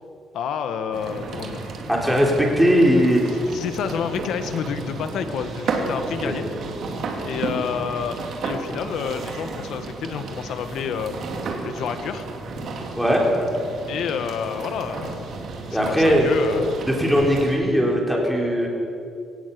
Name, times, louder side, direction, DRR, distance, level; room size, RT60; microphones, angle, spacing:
voice 1, 0.3-1.7 3.5-6.5 7.2-8.2 8.4-11.2 11.6-12.3 13.9-15.4 15.7-16.7, left 7 dB, 65° left, 9 dB, 1.7 m, -29 dB
sound 1, 0.9-17.6, right 3 dB, 50° right, 2.6 m, -32 dB
voice 2, 1.9-3.2 6.2-6.3 13.0-13.2 15.7-16.3 17.0-18.7, equal, ahead, -2 dB, 3.7 m, -19 dB
22.0 x 17.5 x 7.0 m, 2.6 s
cardioid pair, 170°, 0 cm